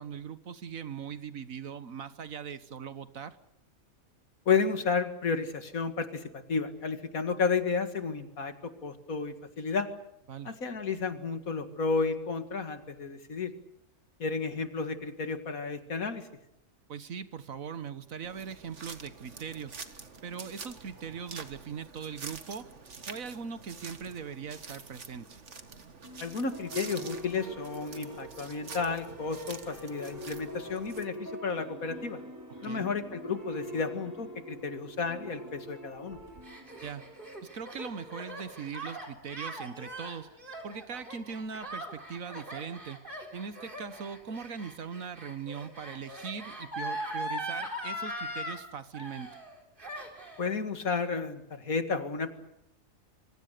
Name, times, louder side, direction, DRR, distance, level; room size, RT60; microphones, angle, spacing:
voice 1, 0.0-3.4 10.3-10.5 16.9-19.8 20.2-22.7 23.1-25.4 32.6-32.9 36.8-37.0 37.4-40.3 40.6-43.0 43.3-49.3, right 6 dB, 75° right, 13 dB, 1.7 m, -40 dB
voice 2, 4.5-9.9 10.4-13.5 14.2-16.3 26.2-32.2 32.6-36.2 50.4-52.3, left 4 dB, 85° left, 9 dB, 2.4 m, -32 dB
sound 1, 18.2-31.1, right 4 dB, 55° right, 2.0 m, -47 dB
sound 2, 26.0-41.6, equal, 15° right, 5.5 m, -45 dB
Gasp, 36.1-48.6 48.9-49.5 49.8-50.5, equal, 35° right, 4.5 m, -40 dB
26.0 x 24.5 x 6.8 m, 0.78 s
omnidirectional pair, 1.4 m